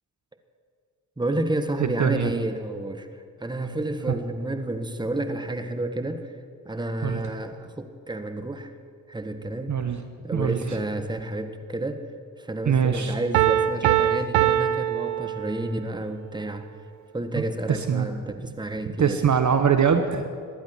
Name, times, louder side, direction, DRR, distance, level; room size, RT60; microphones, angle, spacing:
voice 1, 1.2-3.1 3.4-6.3 6.6-8.7 9.1-9.8 10.2-12.0 12.4-16.7 17.1-19.2, right 2 dB, 10° right, 8 dB, 1.4 m, -30 dB
voice 2, 1.8-2.3 4.1-4.2 7.0-7.2 9.7-10.0 10.3-10.8 12.6-13.2 17.3-18.1 19.0-20.3, right 7 dB, 40° right, 8 dB, 1.1 m, -23 dB
Piano, 13.3-15.9, right 12 dB, 75° right, 0.7 m, -23 dB
17.5 x 11.5 x 6.1 m, 2.2 s
hypercardioid pair, 50°, 45 cm